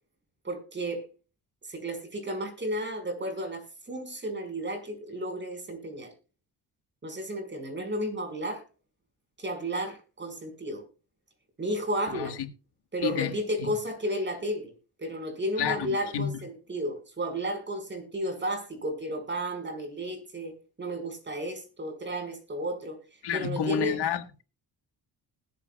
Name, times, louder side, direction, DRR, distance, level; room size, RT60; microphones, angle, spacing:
voice 1, 0.4-1.1 1.7-6.1 7.0-8.6 9.4-10.8 11.6-12.4 12.9-14.7 15.0-23.0 23.3-24.0, right 1 dB, 30° right, 5.4 m, -33 dB
voice 2, 12.1-12.5 13.0-13.7 15.6-16.3 23.2-24.4, left 8 dB, 90° left, 1.7 m, -30 dB
20.5 x 8.6 x 2.3 m
cardioid pair, 105°, 39 cm